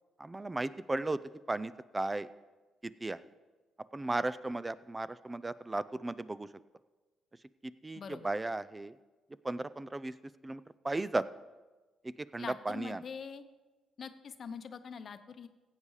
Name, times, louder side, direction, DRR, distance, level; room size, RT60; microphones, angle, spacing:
voice 1, 0.2-1.2 1.5-2.3 2.8-3.2 3.9-6.5 7.8-8.9 9.4-10.1 10.4-11.2 12.3-13.0, right 2 dB, 20° right, 16 dB, 0.4 m, -35 dB
voice 2, 7.9-8.3 12.4-13.4 14.0-15.5, left 6 dB, 50° left, 10 dB, 0.8 m, -44 dB
16.0 x 8.2 x 4.9 m, 1.2 s
cardioid pair, 90°, 0 cm